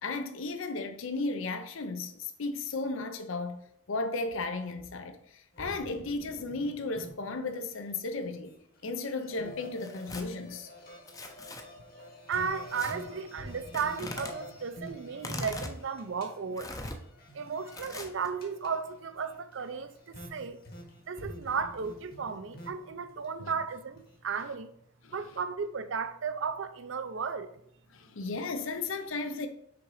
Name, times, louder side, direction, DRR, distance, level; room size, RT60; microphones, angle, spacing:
voice 1, 0.0-8.5 8.8-10.7 23.4-23.5 25.0-25.1 27.9-29.5, left 3 dB, 70° left, 0.6 m, -35 dB
sound 1, 5.5-7.9 8.2-24.4, equal, 50° left, 1.5 m, -48 dB
Tearing, 9.8-10.2 11.1-11.6 12.7-12.9 13.7-14.3 15.2-15.8 16.6-17.0 17.7-18.3, left 2 dB, 15° left, 0.6 m, -40 dB
voice 2, 12.0-16.8 17.3-20.6 21.1-24.7 25.1-27.6, right 5 dB, 65° right, 0.5 m, -35 dB
5.8 x 3.7 x 4.8 m
head